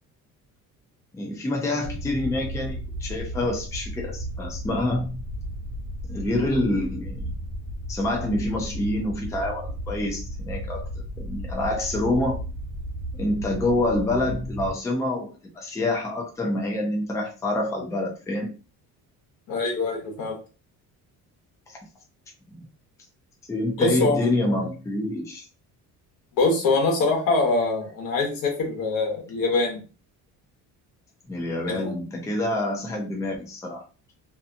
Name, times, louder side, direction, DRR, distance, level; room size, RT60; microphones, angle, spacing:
voice 1, 1.1-5.2 6.1-7.2 7.9-10.9 11.2-12.4 13.1-18.5 21.7-21.8 22.5-22.6 23.5-25.5 31.3-33.8, left 1 dB, 10° left, -1 dB, 0.5 m, -27 dB
sound 1, 1.8-14.7, equal, 40° right, 0.9 m, -34 dB
voice 2, 19.5-20.4 23.8-24.2 26.4-29.8 31.7-31.9, left 3 dB, 70° left, 1 dB, 1.1 m, -23 dB
2.7 x 2.3 x 2.5 m, 0.35 s
cardioid pair, 145°, 35 cm